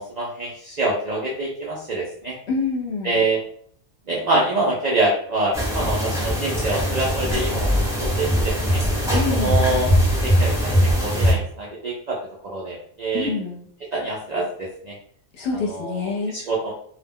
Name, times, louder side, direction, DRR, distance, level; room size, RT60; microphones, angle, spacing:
voice 1, 0.0-2.3 3.0-3.4 4.1-9.9 10.2-12.2 12.4-13.3 13.9-14.9 15.7-16.7, right 2 dB, 75° right, -3 dB, 0.4 m, -26 dB
voice 2, 2.5-3.2 9.1-9.6 13.1-13.7 15.4-16.4, left 4 dB, 60° left, -1 dB, 0.9 m, -26 dB
sound 1, 5.5-11.3, equal, 5° right, 0.5 m, -21 dB
2.3 x 2.1 x 3.5 m, 0.63 s
omnidirectional pair, 1.4 m